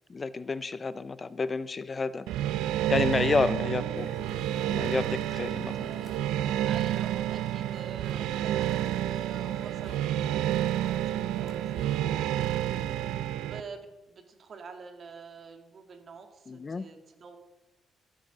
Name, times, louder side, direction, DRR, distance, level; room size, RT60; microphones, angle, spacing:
voice 1, 0.1-2.3 2.9-4.1 4.7-5.9 12.8-12.9 16.5-16.9, left 4 dB, 35° left, 16 dB, 0.5 m, -30 dB
sound 1, 2.3-13.6, right 12 dB, 90° right, 0.5 m, -29 dB
voice 2, 3.6-4.1 5.7-6.3 6.6-13.0 13.4-17.4, right 5 dB, 50° right, 6 dB, 2.4 m, -47 dB
sound 2, 3.9-12.0, left 4 dB, 50° left, 2.3 m, -52 dB
14.5 x 8.8 x 6.1 m, 1.0 s
cardioid pair, 90°, 0 cm